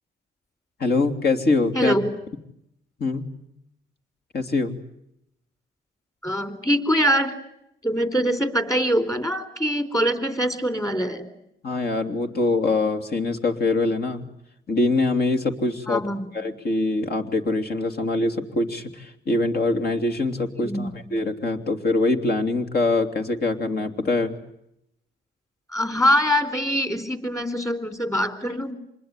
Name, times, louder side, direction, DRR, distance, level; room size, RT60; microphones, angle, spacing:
voice 1, 0.8-1.9 3.0-3.3 4.3-4.8 11.6-14.2 14.7-16.0 16.3-24.4, left 2 dB, 50° left, 6 dB, 3.2 m, -23 dB
voice 2, 1.7-2.1 6.2-7.3 7.8-11.3 15.9-16.3 20.6-20.9 25.7-28.7, equal, 15° left, 10 dB, 3.9 m, -23 dB
26.5 x 21.0 x 10.0 m, 0.79 s
cardioid pair, 90°, 20 cm